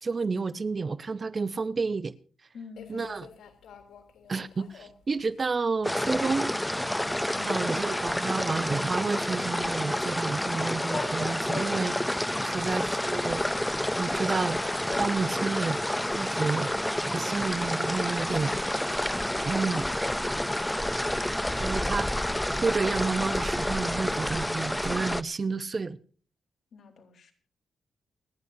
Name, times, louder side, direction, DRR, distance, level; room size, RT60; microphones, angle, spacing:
voice 1, 0.0-2.1 2.9-3.3 4.3-6.5 7.5-12.0 12.4-13.4 14.0-15.8 16.1-16.7 17.0-18.6 19.4-19.9 21.5-22.1 22.6-26.0, right 4 dB, 30° right, 0.8 m, -30 dB
voice 2, 2.5-3.3 26.7-27.3, left 5 dB, 60° left, 3.7 m, -49 dB
sound 1, 2.8-16.3, left 6 dB, 90° left, 3.4 m, -54 dB
sound 2, 5.8-25.2, left 1 dB, 5° left, 0.5 m, -29 dB
sound 3, 10.8-12.0 13.5-13.8 14.3-15.4 15.8-15.9 18.3-18.4 20.0-20.3, left 3 dB, 25° left, 4.3 m, -39 dB
29.0 x 10.0 x 2.7 m
cardioid pair, 125°, 0 cm